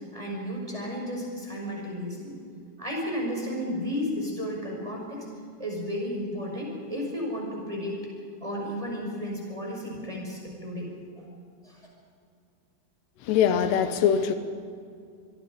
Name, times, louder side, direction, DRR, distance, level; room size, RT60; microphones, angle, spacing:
voice 1, 0.1-2.4 2.8-5.3 5.6-8.0 8.4-10.9 11.2-11.3 11.6-11.9, equal, 10° right, -2 dB, 5.5 m, -33 dB
voice 2, 13.2-14.3, left 8 dB, 85° left, 9 dB, 3.2 m, -22 dB
26.5 x 22.5 x 5.2 m, 2.3 s
omnidirectional pair, 4.8 m